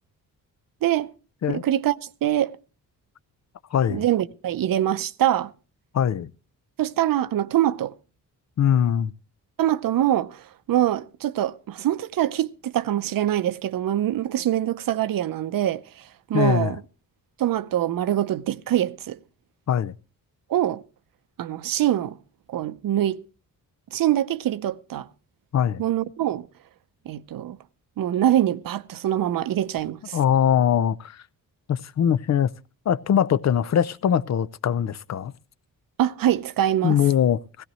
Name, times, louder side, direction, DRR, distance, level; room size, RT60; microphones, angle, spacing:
voice 1, 0.8-1.1 1.5-2.6 3.9-5.5 6.8-7.9 9.6-15.8 16.3-16.8 17.4-19.2 20.5-20.8 21.4-22.2 22.5-23.2 23.9-25.1 25.8-26.5 27.1-27.6 28.0-30.2 36.0-37.0, right 12 dB, 70° right, 0.7 m, -24 dB
voice 2, 3.7-4.0 5.9-6.3 8.6-9.1 16.3-16.8 19.7-19.9 25.5-25.8 30.1-31.2 31.7-32.5 32.9-35.3 36.8-37.6, left 9 dB, 50° left, 0.6 m, -22 dB
16.5 x 16.0 x 3.0 m
cardioid pair, 105°, 35 cm